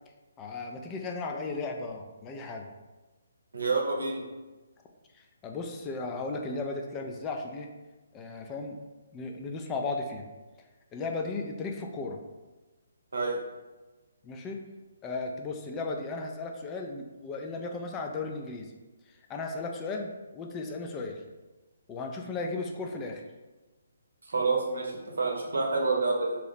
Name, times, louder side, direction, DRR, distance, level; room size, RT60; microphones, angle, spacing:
voice 1, 0.4-2.7 5.1-7.7 8.1-8.8 9.1-10.3 10.9-12.2 14.2-14.6 15.0-18.7 19.3-21.2 21.9-23.2, left 3 dB, 20° left, 2 dB, 0.3 m, -35 dB
voice 2, 3.5-4.2 13.1-13.4 24.3-26.4, right 3 dB, 75° right, 0 dB, 0.7 m, -28 dB
2.9 x 2.0 x 4.0 m, 1.2 s
hypercardioid pair, 150°, 0 cm